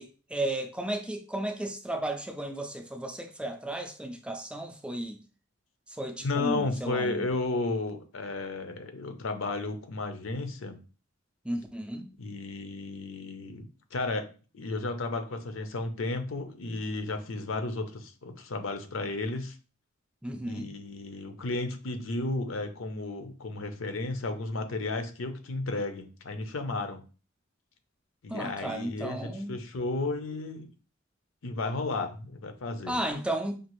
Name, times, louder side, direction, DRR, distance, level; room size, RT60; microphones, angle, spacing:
voice 1, 0.0-5.2 5.9-7.3 11.4-12.1 20.2-20.7 28.3-29.6 32.9-33.6, right 1 dB, 5° right, 0.4 m, -34 dB
voice 2, 6.2-10.8 12.2-14.3 14.5-19.5 20.4-27.0 28.2-30.7 31.4-32.9, left 2 dB, 85° left, 0.7 m, -33 dB
5.0 x 2.4 x 3.0 m
head